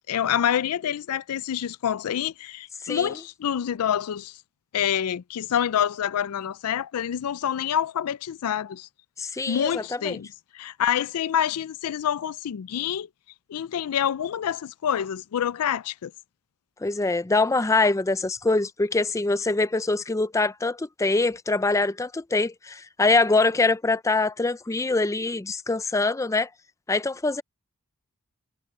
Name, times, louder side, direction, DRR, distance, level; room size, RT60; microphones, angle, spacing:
voice 1, 0.1-4.4 4.7-8.9 9.5-10.3 10.5-13.1 13.5-16.1, left 9 dB, 80° left, 0.4 m, -27 dB
voice 2, 9.2-10.2 16.8-26.5 26.9-27.4, left 3 dB, 15° left, 0.4 m, -24 dB
head